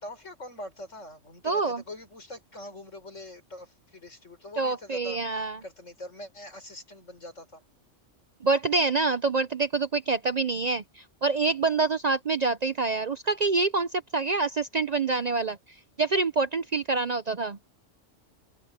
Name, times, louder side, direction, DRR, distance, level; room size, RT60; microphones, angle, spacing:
voice 1, 0.0-7.6, left 1 dB, 80° left, 6.0 m, -43 dB
voice 2, 1.4-1.8 4.6-5.6 8.4-15.6 16.0-17.6, right 3 dB, 45° right, 0.6 m, -26 dB
open air
omnidirectional pair, 1.2 m